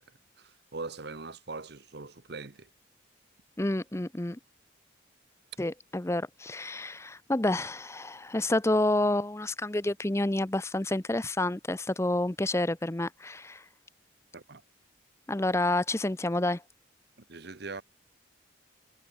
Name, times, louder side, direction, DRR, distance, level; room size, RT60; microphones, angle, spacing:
voice 1, 0.4-2.7 14.3-14.6 17.2-17.8, right 3 dB, 55° right, 1.0 m, -41 dB
voice 2, 3.6-4.4 5.6-13.6 15.3-16.6, left 1 dB, 15° left, 0.6 m, -29 dB
head